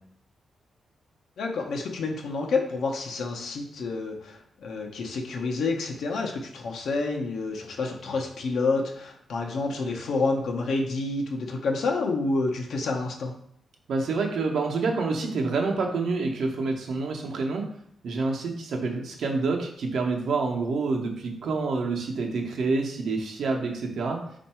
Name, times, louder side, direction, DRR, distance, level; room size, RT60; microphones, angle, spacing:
voice 1, 1.4-13.3, left 3 dB, 80° left, 1 dB, 0.7 m, -29 dB
voice 2, 13.9-17.7 18.0-24.2, right 3 dB, 70° right, 1 dB, 0.8 m, -27 dB
4.5 x 2.6 x 4.3 m, 0.69 s
wide cardioid pair, 145°, 0 cm